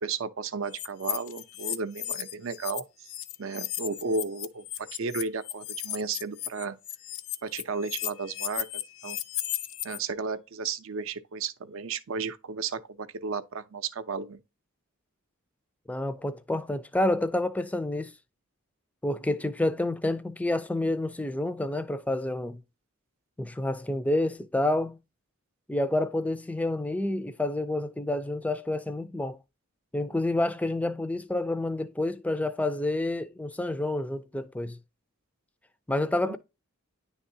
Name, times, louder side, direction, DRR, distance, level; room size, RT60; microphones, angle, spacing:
voice 1, 0.0-2.8 3.4-6.8 7.4-9.2 9.8-14.4 36.3-36.4, right 4 dB, 60° right, 0.5 m, -33 dB
sound 1, 0.7-2.8 3.1-10.0, left 13 dB, 70° left, 0.5 m, -35 dB
voice 2, 15.9-18.1 19.0-22.6 23.4-25.0 25.7-29.4 29.9-34.8 35.9-36.4, left 1 dB, 5° left, 0.4 m, -29 dB
10.0 x 3.5 x 2.7 m
head